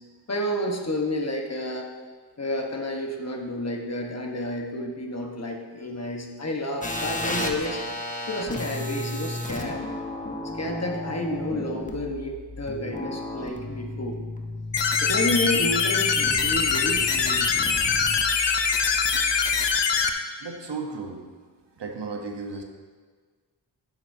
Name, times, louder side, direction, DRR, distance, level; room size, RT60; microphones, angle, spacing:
voice 1, 0.3-1.9 2.4-7.8 8.3-9.8 10.5-14.2 15.0-17.5, left 1 dB, 35° left, 1 dB, 1.3 m, -30 dB
sound 1, 6.8-19.7, left 1 dB, 20° left, 1.1 m, -34 dB
sound 2, 14.7-20.1, left 5 dB, 75° left, 0.8 m, -23 dB
voice 2, 20.4-21.3 21.7-22.6, right 4 dB, 70° right, 3 dB, 1.1 m, -34 dB
10.5 x 8.0 x 2.8 m, 1.5 s
cardioid pair, 50°, 44 cm